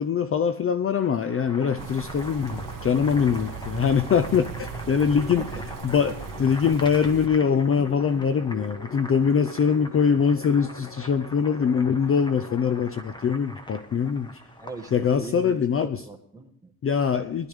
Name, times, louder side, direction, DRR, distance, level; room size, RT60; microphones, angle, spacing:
voice 1, 0.0-5.4 5.8-14.3 14.9-16.0 16.8-17.5, left 6 dB, 35° left, 11 dB, 0.5 m, -23 dB
sound 1, 0.9-13.5, left 5 dB, 55° left, 1.5 m, -45 dB
Boiling, 1.3-15.3, equal, 10° left, 1.1 m, -42 dB
sound 2, 1.8-7.3, right 8 dB, 55° right, 0.9 m, -38 dB
voice 2, 14.6-16.7, right 2 dB, 10° right, 1 dB, 1.5 m, -39 dB
19.5 x 12.0 x 3.5 m, 0.66 s
wide cardioid pair, 175°, 38 cm